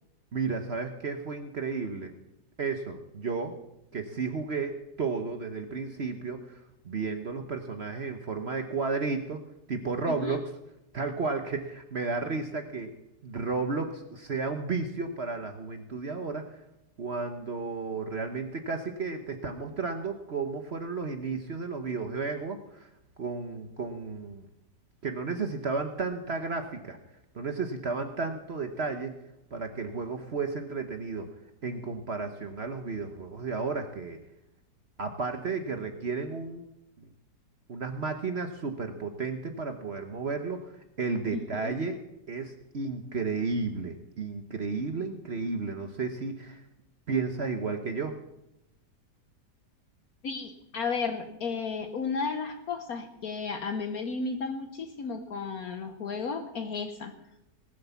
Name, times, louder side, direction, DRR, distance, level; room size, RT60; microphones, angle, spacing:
voice 1, 0.3-2.1 2.6-3.6 3.9-9.4 9.7-10.4 10.9-12.9 13.2-16.6 17.0-22.9 23.2-24.5 25.0-27.0 27.3-29.2 29.5-31.3 31.6-34.2 35.0-36.6 37.7-42.0 42.3-46.6 47.1-48.2, right 4 dB, 45° right, 6 dB, 1.1 m, -33 dB
voice 2, 41.3-41.7 50.2-57.1, left 5 dB, 65° left, 6 dB, 1.4 m, -33 dB
19.0 x 7.8 x 7.0 m, 0.88 s
omnidirectional pair, 1.7 m